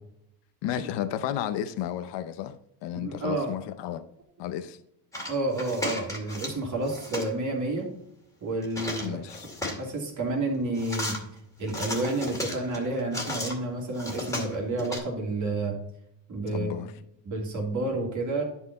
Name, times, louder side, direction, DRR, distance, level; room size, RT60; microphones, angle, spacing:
voice 1, 0.6-2.6 2.8-4.0 4.4-4.8 9.0-9.5 16.5-16.9, left 11 dB, 65° left, 0.7 m, -32 dB
voice 2, 2.9-3.5 5.3-7.9 8.4-9.2 9.8-11.2 11.6-15.8 16.3-16.7 17.2-18.4, right 2 dB, 40° right, 3.0 m, -30 dB
sound 1, 5.1-6.6 6.8-7.3 8.6-9.9 10.8-11.2 11.7-13.5 13.9-15.0, left 1 dB, 5° left, 2.2 m, -34 dB
11.0 x 4.6 x 4.1 m
cardioid pair, 125°, 45 cm